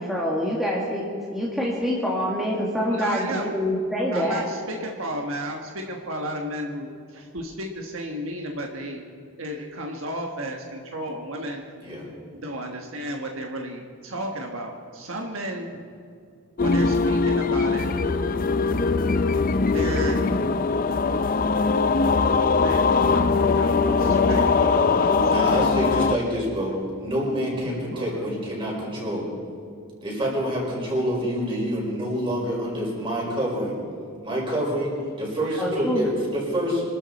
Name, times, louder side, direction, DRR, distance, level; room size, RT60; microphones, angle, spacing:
voice 1, 0.0-4.4 35.6-36.1, equal, ahead, -5 dB, 1.9 m, -26 dB
voice 2, 2.9-3.5 4.1-9.0 9.4-11.6 12.4-15.8 16.6-17.9 19.4-20.8 22.6-25.5 27.9-28.2 35.4-35.6, right 1 dB, 65° right, 2 dB, 1.4 m, -33 dB
sound 1, 16.6-26.2, left 4 dB, 40° left, 0.5 m, -21 dB
voice 3, 25.3-26.7 27.0-29.2 30.0-33.8 34.2-34.9 35.2-36.8, equal, 25° right, -4 dB, 5.2 m, -27 dB
25.5 x 13.0 x 4.2 m, 2.4 s
head